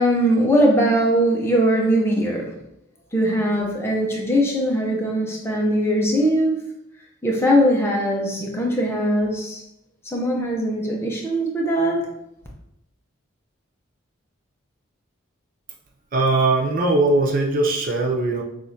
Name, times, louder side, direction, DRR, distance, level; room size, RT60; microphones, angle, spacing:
voice 1, 0.0-2.6 3.1-6.6 7.2-9.6 10.0-12.1, equal, 10° left, -1 dB, 0.6 m, -20 dB
voice 2, 16.1-18.4, right 2 dB, 40° right, 1 dB, 0.4 m, -20 dB
6.1 x 2.4 x 2.7 m, 0.83 s
head